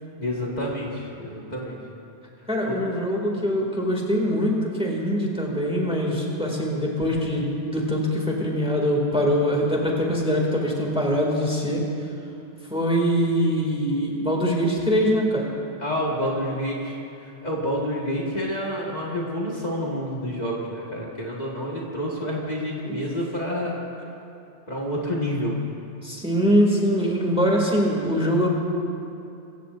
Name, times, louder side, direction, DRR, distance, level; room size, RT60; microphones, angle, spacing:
voice 1, 0.2-1.8 2.7-2.8 15.8-23.7 24.7-25.5, equal, 40° left, -4 dB, 1.8 m, -28 dB
voice 2, 2.5-11.8 12.7-15.5 22.9-23.0 26.0-28.5, equal, 5° right, -2 dB, 2.2 m, -23 dB
23.0 x 16.0 x 2.6 m, 2.7 s
omnidirectional pair, 1.2 m